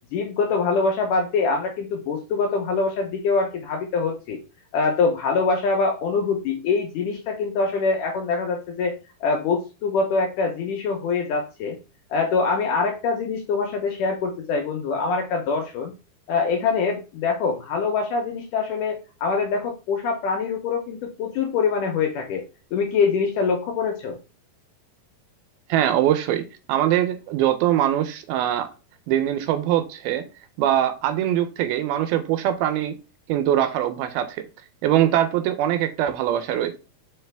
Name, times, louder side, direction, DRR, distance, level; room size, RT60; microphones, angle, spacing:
voice 1, 0.1-4.4 4.7-11.8 12.1-15.9 16.3-22.4 22.7-24.2, left 4 dB, 75° left, 2.0 m, -24 dB
voice 2, 25.7-28.7 29.1-30.2 30.6-33.0 33.3-34.5 34.8-36.8, right 11 dB, 80° right, 2.4 m, -22 dB
5.6 x 4.9 x 3.4 m
omnidirectional pair, 4.5 m